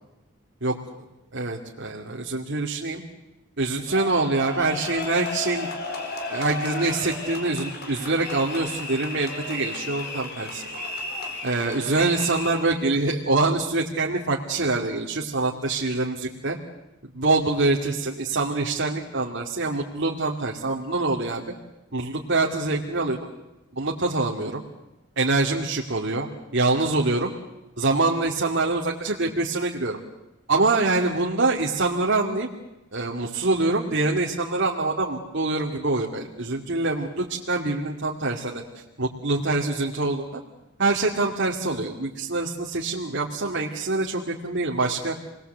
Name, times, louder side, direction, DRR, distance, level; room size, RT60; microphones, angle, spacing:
voice 1, 1.3-3.0 3.6-5.7 6.3-10.7 11.4-16.6 17.1-21.4 21.9-23.2 23.7-24.6 25.2-26.3 26.5-27.3 27.8-30.0 30.5-32.5 32.9-38.6 39.0-40.4 40.8-45.2, right 3 dB, 60° right, -1 dB, 2.4 m, -25 dB
sound 1, 3.9-12.8, left 3 dB, 50° left, 3.9 m, -34 dB
29.0 x 21.0 x 8.1 m, 1.0 s
head